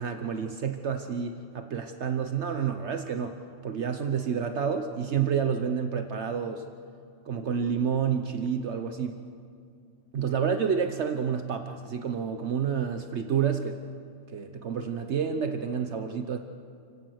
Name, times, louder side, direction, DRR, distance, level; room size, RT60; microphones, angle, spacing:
voice 1, 0.0-3.4 3.6-6.6 7.2-9.2 10.1-13.8 14.3-16.4, right 7 dB, 65° right, 7 dB, 1.2 m, -29 dB
29.0 x 17.0 x 6.5 m, 2.4 s
omnidirectional pair, 1.3 m